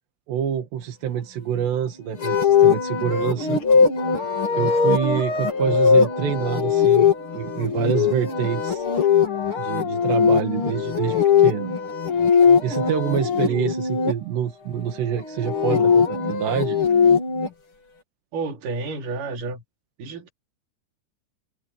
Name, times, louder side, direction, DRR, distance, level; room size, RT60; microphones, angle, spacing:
voice 1, 0.3-3.6 4.6-8.9 9.6-11.7 12.6-16.8, right 9 dB, 80° right, 4.2 m, -26 dB
sound 1, 2.2-14.1 15.3-17.5, left 6 dB, 35° left, 3.2 m, -20 dB
voice 2, 18.3-19.6 20.0-20.3, right 3 dB, 55° right, 4.5 m, -30 dB
omnidirectional pair, 4.9 m